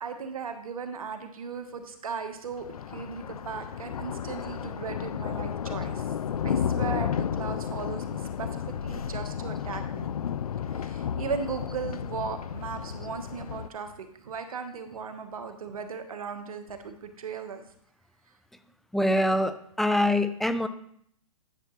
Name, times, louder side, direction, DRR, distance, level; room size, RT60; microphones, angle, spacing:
voice 1, 0.0-6.0 6.4-10.1 10.7-17.6, right 5 dB, 75° right, 8 dB, 1.2 m, -37 dB
Thunder, 2.5-13.7, left 8 dB, 85° left, 0.4 m, -32 dB
voice 2, 18.9-20.7, left 1 dB, ahead, 10 dB, 0.3 m, -24 dB
10.5 x 6.7 x 3.1 m, 0.68 s
hypercardioid pair, 125°, 18 cm